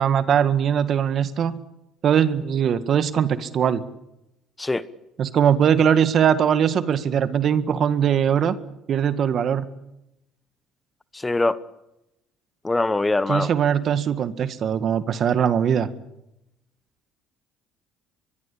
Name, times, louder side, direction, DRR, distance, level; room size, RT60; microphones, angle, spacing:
voice 1, 0.0-1.6 2.0-3.8 5.2-8.5 8.9-9.6 13.3-15.9, right 8 dB, 50° right, 1.8 m, -21 dB
voice 2, 11.1-11.6 12.6-13.5, left 2 dB, 15° left, 1.1 m, -22 dB
24.0 x 22.0 x 8.6 m
supercardioid pair, 95°, 0 cm